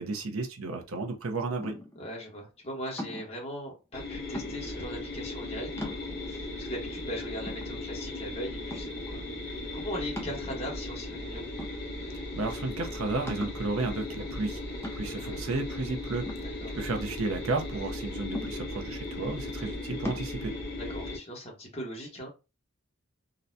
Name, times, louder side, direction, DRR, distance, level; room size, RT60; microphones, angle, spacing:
voice 1, 0.0-1.8 12.4-14.6 14.9-20.5, right 3 dB, 80° right, 0.7 m, -33 dB
sound 1, 1.6-2.1 3.0-3.4 4.3-4.8 5.4-5.5 5.8-6.4 7.0-7.1 7.5-8.2 8.7-9.1 10.2-10.9 11.6-12.2 12.6-12.7 13.3-13.7 14.8-15.3 16.3-17.2 18.3-18.9 20.0-20.3, left 1 dB, 10° left, 0.4 m, -40 dB
voice 2, 2.0-11.5 15.1-15.4 16.4-16.7 20.8-22.3, equal, 30° left, 1.1 m, -40 dB
sound 2, 3.9-21.2, left 2 dB, 45° left, 1.2 m, -37 dB
3.8 x 2.2 x 2.6 m
head